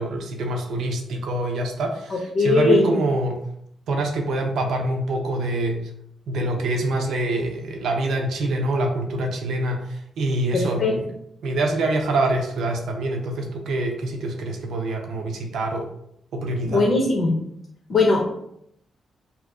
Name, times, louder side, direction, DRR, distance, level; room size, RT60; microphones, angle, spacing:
voice 1, 0.0-3.5 3.9-5.8 6.3-11.0 11.4-15.9 16.3-16.8, right 2 dB, 80° right, 2 dB, 0.5 m, -25 dB
voice 2, 2.1-2.9 10.5-10.9 16.6-17.3 17.9-18.2, left 3 dB, 55° left, -2 dB, 0.7 m, -20 dB
2.7 x 2.4 x 3.5 m, 0.74 s
cardioid pair, 90°, 0 cm